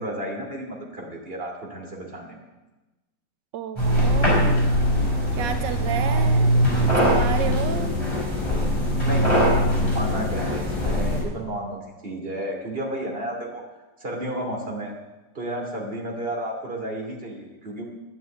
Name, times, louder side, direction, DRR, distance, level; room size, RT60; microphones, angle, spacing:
voice 1, 0.0-2.4 4.2-5.5 5.8-6.3 9.0-13.6 14.0-14.9 15.3-17.8, right 1 dB, 30° right, 1 dB, 2.9 m, -33 dB
voice 2, 3.5-4.6 5.3-8.0, right 8 dB, 85° right, 9 dB, 1.5 m, -31 dB
sound 1, 3.8-11.2, equal, 15° left, 5.2 m, -21 dB
11.5 x 9.7 x 8.9 m, 1.1 s
omnidirectional pair, 1.9 m